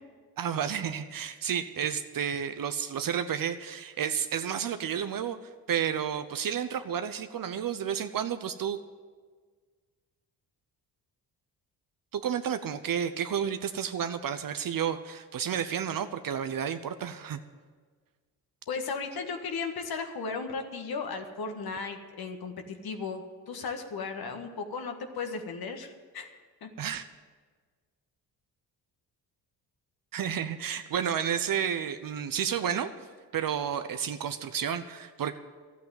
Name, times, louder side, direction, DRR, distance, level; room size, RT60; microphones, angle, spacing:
voice 1, 0.4-5.4 5.7-8.8 12.1-17.4 26.8-27.0 30.1-32.9 33.3-35.4, right 8 dB, 55° right, 10 dB, 0.8 m, -31 dB
voice 2, 18.7-26.3 26.6-26.7, left 4 dB, 60° left, 5 dB, 1.7 m, -36 dB
13.0 x 8.3 x 9.1 m, 1.5 s
supercardioid pair, 65°, 41 cm